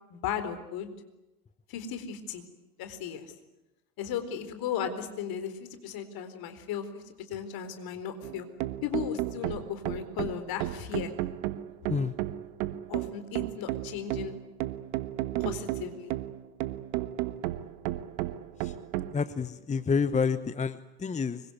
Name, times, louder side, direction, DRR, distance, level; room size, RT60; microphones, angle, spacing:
voice 1, 0.1-0.9 1.7-2.4 2.8-3.3 4.0-7.0 7.3-8.5 8.8-11.1 12.9-14.4 15.4-16.1, left 8 dB, 50° left, 10 dB, 4.2 m, -36 dB
sound 1, 8.2-19.1, right 15 dB, 60° right, 1.6 m, -33 dB
voice 2, 19.1-21.4, left 5 dB, 15° left, 15 dB, 1.0 m, -29 dB
25.5 x 23.0 x 9.4 m, 0.98 s
hypercardioid pair, 75°, 47 cm